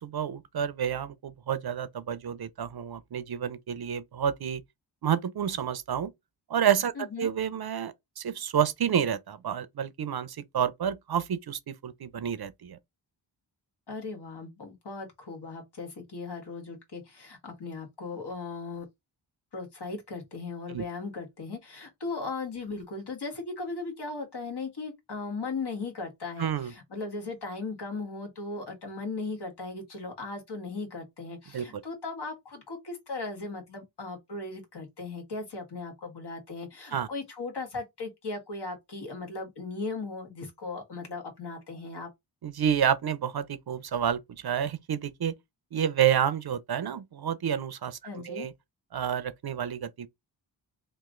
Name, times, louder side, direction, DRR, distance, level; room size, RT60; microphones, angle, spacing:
voice 1, 0.0-4.6 5.0-6.1 6.5-6.9 7.2-12.8 20.7-20.8 26.4-26.7 31.5-31.7 36.9-37.1 42.4-45.4 45.7-48.5 48.9-50.1, right 9 dB, 55° right, 0.6 m, -29 dB
voice 2, 7.0-7.3 13.9-18.8 19.5-42.1 48.0-48.5, left 3 dB, 60° left, 1.6 m, -37 dB
3.0 x 2.5 x 3.6 m
wide cardioid pair, 90°, 44 cm